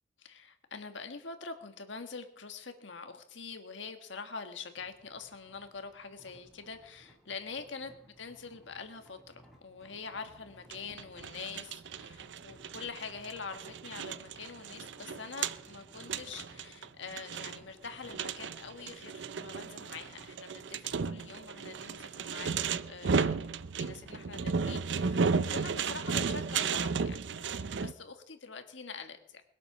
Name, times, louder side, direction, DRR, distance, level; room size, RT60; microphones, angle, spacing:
voice 1, 0.2-23.5 23.7-29.4, left 5 dB, 75° left, 7 dB, 1.7 m, -45 dB
sound 1, 4.8-24.6, right 1 dB, ahead, 3.0 m, -61 dB
sound 2, 10.7-27.9, right 5 dB, 70° right, 0.5 m, -34 dB
21.0 x 8.0 x 6.1 m, 0.74 s
head